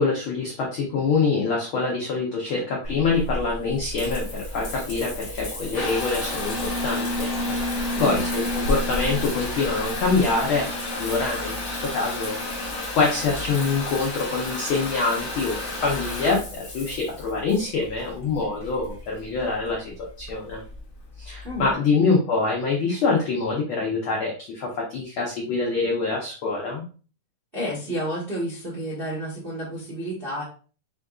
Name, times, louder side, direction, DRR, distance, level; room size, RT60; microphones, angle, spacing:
voice 1, 0.0-10.7 10.9-12.4 13.0-15.6 15.8-19.9 20.2-20.6 21.2-26.8, left 4 dB, 80° left, -2 dB, 1.1 m, -25 dB
Water tap faucet / Bathtub (filling or washing) / Trickle dribble, 2.8-21.7, left 1 dB, 50° left, 0.8 m, -31 dB
voice 2, 7.9-8.3 21.4-21.7 27.5-30.4, equal, 75° right, -6 dB, 0.5 m, -30 dB
5.1 x 3.5 x 2.3 m, 0.38 s
omnidirectional pair, 3.4 m